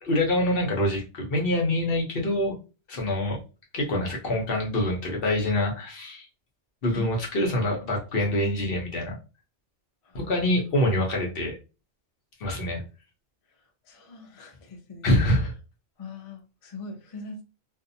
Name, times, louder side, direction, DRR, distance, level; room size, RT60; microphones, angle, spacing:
voice 1, 0.0-2.5 2.9-3.4 3.7-6.2 6.8-9.2 10.1-11.5 12.4-12.8 15.0-15.5, left 1 dB, 55° left, 0 dB, 0.9 m, -25 dB
voice 2, 13.9-15.1 16.0-17.4, left 3 dB, 40° left, 0 dB, 0.5 m, -41 dB
2.6 x 2.1 x 2.6 m, 0.32 s
omnidirectional pair, 1.2 m